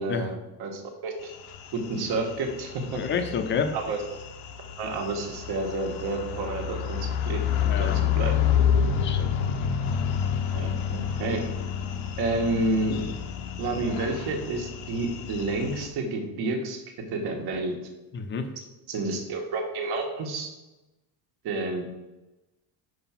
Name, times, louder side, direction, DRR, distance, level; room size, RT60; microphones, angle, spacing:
voice 1, 0.0-1.3 1.7-3.0 3.7-4.0 4.8-7.9 8.2-8.3 10.5-11.4 12.2-13.0 13.6-16.8 17.1-17.8 18.9-20.5 21.4-21.8, right 2 dB, 55° right, 2 dB, 1.6 m, -30 dB
sound 1, 1.3-15.9, left 8 dB, 80° left, 1.0 m, -29 dB
voice 2, 2.9-3.7 7.6-8.0 9.0-9.3 18.1-18.5, left 6 dB, 25° left, 7 dB, 0.6 m, -29 dB
6.0 x 4.8 x 5.8 m, 1.0 s
cardioid pair, 155°, 45 cm